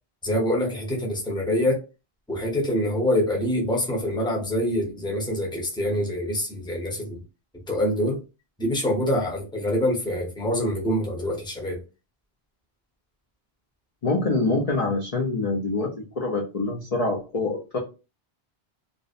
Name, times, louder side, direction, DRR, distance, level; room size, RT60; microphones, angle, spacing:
voice 1, 0.2-1.8 2.3-7.2 7.7-8.2 8.6-11.8, left 1 dB, 5° left, -1 dB, 0.6 m, -25 dB
voice 2, 14.0-17.8, left 3 dB, 50° left, 0 dB, 0.5 m, -25 dB
2.5 x 2.0 x 2.4 m, 0.30 s
omnidirectional pair, 1.1 m